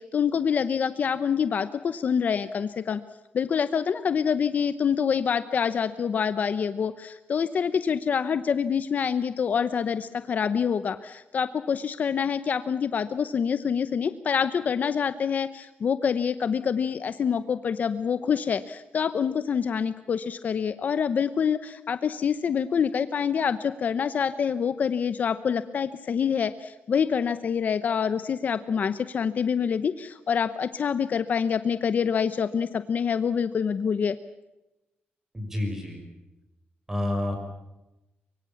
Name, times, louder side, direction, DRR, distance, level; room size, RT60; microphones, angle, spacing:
voice 1, 0.0-3.0 3.3-34.2, left 7 dB, 45° left, 13 dB, 0.8 m, -26 dB
voice 2, 35.3-36.0 36.9-37.4, left 1 dB, 10° right, 5 dB, 6.0 m, -29 dB
24.0 x 24.0 x 7.1 m, 0.98 s
wide cardioid pair, 170°, 4 cm